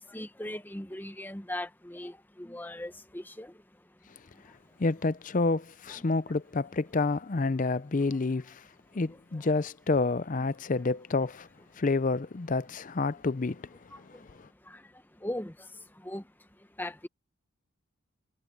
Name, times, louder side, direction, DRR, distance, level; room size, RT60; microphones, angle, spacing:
voice 1, 0.0-4.8 5.9-6.2 8.8-9.5 10.4-10.5 13.9-17.1, left 1 dB, 10° left, 0.9 m, -41 dB
voice 2, 4.8-8.4 8.9-11.5 11.8-13.7, left 3 dB, 35° left, 0.5 m, -28 dB
head